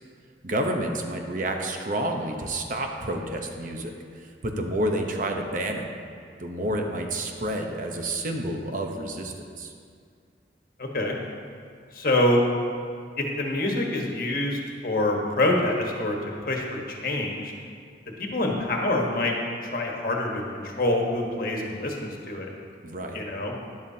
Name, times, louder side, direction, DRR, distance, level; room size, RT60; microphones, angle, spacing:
voice 1, 0.4-3.9 4.2-5.9 6.4-9.7 22.8-23.2, right 1 dB, 45° right, 3 dB, 0.9 m, -29 dB
voice 2, 10.8-11.2 11.9-12.4 13.2-16.2 16.4-17.5 18.2-19.3 19.6-22.5 23.1-23.5, left 1 dB, 55° left, 0 dB, 1.3 m, -26 dB
13.0 x 10.5 x 2.8 m, 2.2 s
head